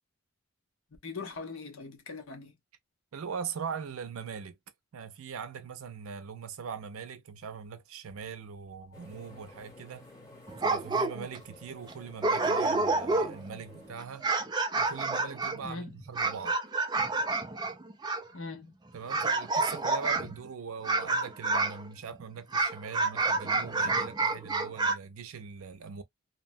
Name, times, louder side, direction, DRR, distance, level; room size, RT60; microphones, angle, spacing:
voice 1, 1.0-2.5 8.9-9.0 15.6-15.9 18.3-18.7, left 4 dB, 80° left, 0.9 m, -41 dB
voice 2, 3.1-4.6 4.9-10.1 10.6-14.3 14.8-16.6 18.9-26.0, right 6 dB, 80° right, 0.5 m, -41 dB
sound 1, 8.9-13.9, left 1 dB, 15° left, 0.9 m, -53 dB
sound 2, 10.5-11.4 11.9-12.0 12.2-13.5 14.0-18.3 19.1-20.4 20.8-21.8 22.5-25.0, right 3 dB, 20° right, 0.3 m, -29 dB
2.7 x 2.2 x 2.6 m
head